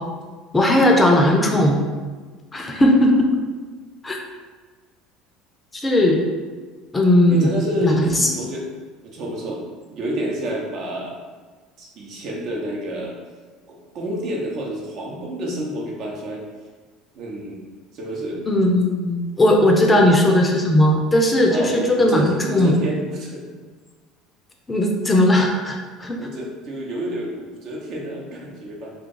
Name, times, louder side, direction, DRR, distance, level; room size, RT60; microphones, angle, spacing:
voice 1, 0.5-1.8 2.5-3.3 4.0-4.2 5.8-6.2 6.9-7.5 7.8-8.3 18.5-22.7 24.7-26.2, left 1 dB, 20° left, 1 dB, 0.5 m, -17 dB
voice 2, 7.3-8.7 9.0-9.6 9.9-11.2 11.8-13.2 13.7-16.4 17.1-17.7 17.9-18.4 19.9-20.1 21.5-23.6 26.2-28.9, equal, 55° right, -2 dB, 0.8 m, -29 dB
2.6 x 2.4 x 3.9 m, 1.4 s
supercardioid pair, 85°, 0 cm